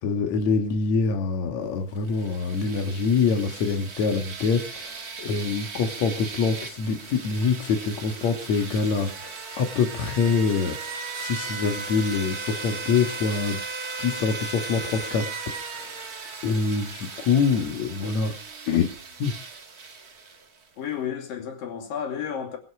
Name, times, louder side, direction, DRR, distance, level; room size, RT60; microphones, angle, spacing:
voice 1, 0.0-13.6 14.0-16.0 16.4-18.4 18.7-18.9 19.2-19.3, left 5 dB, 60° left, 2.8 m, -25 dB
sound 1, 2.0-20.6, right 4 dB, 40° right, 1.5 m, -37 dB
voice 2, 20.8-22.6, left 8 dB, 85° left, 4.4 m, -32 dB
23.0 x 8.4 x 6.1 m
omnidirectional pair, 3.9 m